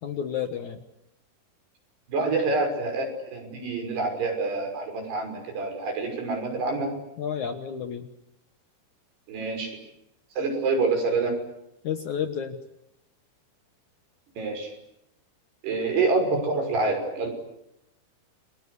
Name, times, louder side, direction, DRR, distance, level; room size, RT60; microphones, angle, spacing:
voice 1, 0.0-0.8 7.2-8.1 11.8-12.6, left 8 dB, 60° left, 7 dB, 2.2 m, -31 dB
voice 2, 2.1-3.1 3.3-6.9 9.3-9.8 10.4-11.4 14.4-14.7 15.6-17.3, right 3 dB, 75° right, 4 dB, 8.1 m, -26 dB
30.0 x 24.0 x 8.3 m, 0.82 s
omnidirectional pair, 4.8 m